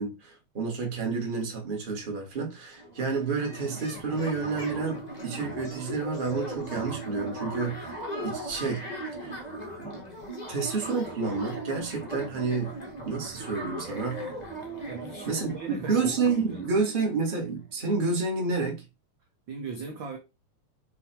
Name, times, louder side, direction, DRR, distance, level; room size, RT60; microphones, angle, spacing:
voice 1, 0.0-8.9 9.2-9.4 9.8-10.0 10.5-12.7 13.0-14.2 15.3-15.5 15.8-18.8, right 4 dB, 20° right, 1.3 m, -30 dB
sound 1, 2.8-17.4, right 1 dB, 25° left, 0.9 m, -38 dB
voice 2, 14.9-16.8 19.5-20.2, right 4 dB, 65° right, 1.2 m, -39 dB
7.4 x 2.9 x 4.4 m
omnidirectional pair, 3.5 m